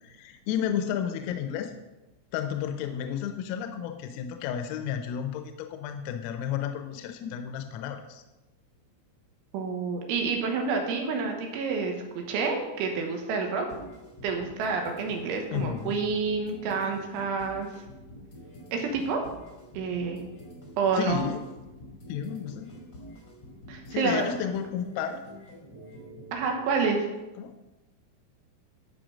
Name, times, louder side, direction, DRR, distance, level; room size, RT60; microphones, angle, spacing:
voice 1, 0.0-1.7 2.3-8.2 15.5-16.0 20.9-21.4 22.1-22.7 23.9-25.2 27.4-27.5, left 9 dB, 85° left, 7 dB, 3.4 m, -32 dB
voice 2, 9.5-13.7 14.2-17.7 18.7-19.3 19.8-20.2 20.8-21.2 23.7-24.3 26.3-27.1, right 4 dB, 75° right, 3 dB, 3.4 m, -28 dB
sound 1, 13.7-26.6, equal, 50° left, 1.2 m, -47 dB
13.0 x 5.7 x 5.1 m, 1.0 s
omnidirectional pair, 6.0 m